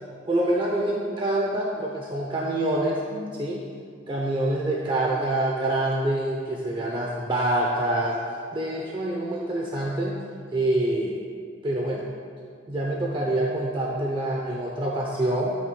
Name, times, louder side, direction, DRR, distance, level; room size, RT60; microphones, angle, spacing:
voice 1, 0.3-3.6 4.1-8.2 8.5-10.2 10.5-11.2 11.6-12.0 12.7-15.5, right 1 dB, 25° right, -2 dB, 0.7 m, -26 dB
12.5 x 8.5 x 2.3 m, 2.1 s
head